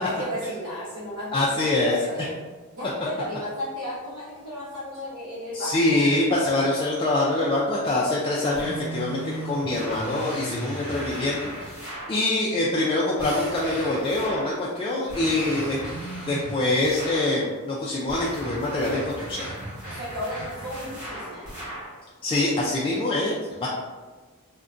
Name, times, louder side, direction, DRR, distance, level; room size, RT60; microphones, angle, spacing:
voice 1, 0.0-2.2 2.7-6.0 15.2-15.6 19.8-21.5, equal, 70° right, -8 dB, 1.0 m, -34 dB
voice 2, 1.3-2.3 5.5-15.8 16.3-19.5 22.2-23.7, left 2 dB, 25° left, -5 dB, 0.3 m, -25 dB
sound 1, 8.5-12.2 13.2-14.6 15.1-17.4 18.1-22.0, right 1 dB, 35° right, 1.5 m, -36 dB
3.6 x 2.2 x 2.4 m, 1.3 s
head